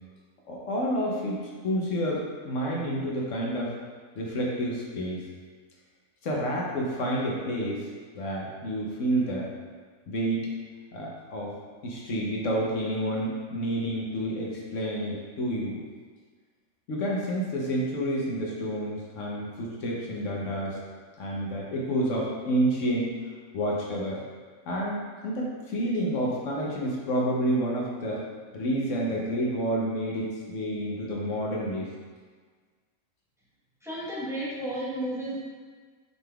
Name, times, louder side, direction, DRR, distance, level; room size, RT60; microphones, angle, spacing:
voice 1, 0.5-3.7 4.2-5.3 6.2-7.9 8.1-9.5 10.1-10.5 10.9-11.6 11.8-15.8 16.9-20.8 21.2-23.1 23.5-24.2 24.7-28.2 28.5-31.9, equal, 65° left, -3 dB, 1.0 m, -29 dB
voice 2, 33.8-35.4, right 1 dB, 5° right, -8 dB, 0.8 m, -32 dB
6.5 x 3.5 x 2.3 m, 1.5 s
omnidirectional pair, 1.5 m